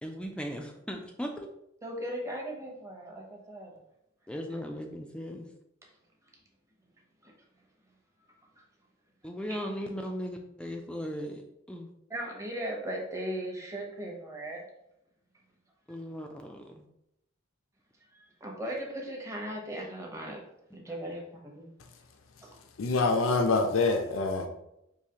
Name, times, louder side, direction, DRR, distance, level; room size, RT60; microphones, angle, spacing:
voice 1, 0.0-1.5 4.3-5.5 9.2-11.9 15.9-16.9 20.9-21.1, equal, 5° left, 0.3 m, -38 dB
voice 2, 1.8-3.7 7.2-7.3 9.5-9.6 12.1-14.6 18.1-20.4 20.7-21.7 22.4-22.6, right 1 dB, 15° right, 0.8 m, -38 dB
voice 3, 22.8-24.5, left 3 dB, 85° left, 0.5 m, -25 dB
4.7 x 2.7 x 2.8 m
head